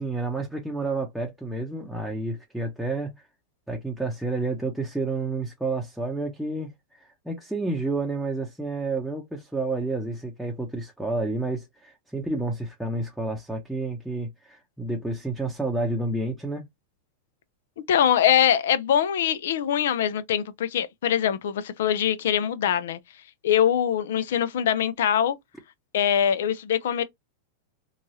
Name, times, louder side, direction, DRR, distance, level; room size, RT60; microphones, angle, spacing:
voice 1, 0.0-3.1 3.7-6.7 7.0-16.7, right 2 dB, ahead, 0.7 m, -30 dB
voice 2, 17.9-23.0 23.4-25.4 25.9-27.0, left 9 dB, 75° left, 0.4 m, -23 dB
3.0 x 2.3 x 2.7 m
hypercardioid pair, 115°, 0 cm